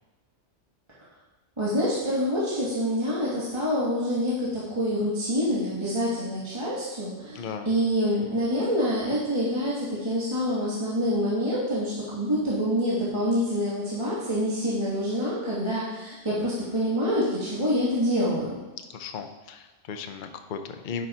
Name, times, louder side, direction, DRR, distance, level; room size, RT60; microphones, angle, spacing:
voice 1, 1.6-18.5, equal, 20° right, -8 dB, 1.6 m, -26 dB
voice 2, 7.3-7.7 18.9-21.1, left 6 dB, 50° left, 6 dB, 0.7 m, -36 dB
10.5 x 5.1 x 4.2 m, 1.2 s
omnidirectional pair, 1.4 m